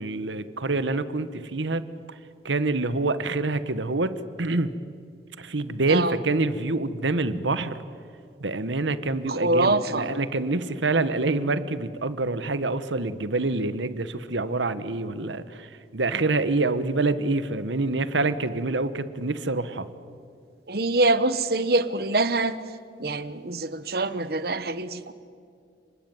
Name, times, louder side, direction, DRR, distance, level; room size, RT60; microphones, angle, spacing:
voice 1, 0.0-1.8 2.4-4.7 5.4-7.8 8.4-19.9, right 3 dB, 80° right, 13 dB, 1.2 m, -26 dB
voice 2, 9.3-10.1 20.7-22.6 23.0-25.1, right 2 dB, 55° right, 13 dB, 1.1 m, -24 dB
30.0 x 20.0 x 9.3 m, 2.4 s
head